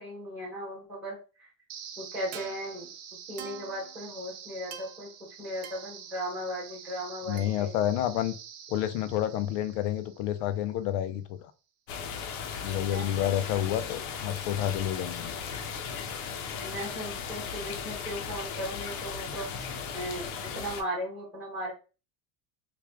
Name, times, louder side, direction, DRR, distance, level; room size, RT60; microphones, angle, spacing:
voice 1, 0.0-1.5 2.0-2.9 3.3-5.1 5.4-7.7 12.7-13.3 16.6-19.5 19.9-21.7, equal, 5° right, 1.0 m, -37 dB
sound 1, 1.7-10.7, right 8 dB, 75° right, 0.8 m, -46 dB
voice 2, 7.3-8.3 8.7-11.4 12.6-15.3, left 11 dB, 55° left, 0.5 m, -29 dB
sound 2, 11.9-20.8, left 6 dB, 70° left, 0.9 m, -37 dB
3.3 x 2.4 x 3.5 m
cardioid pair, 175°, 44 cm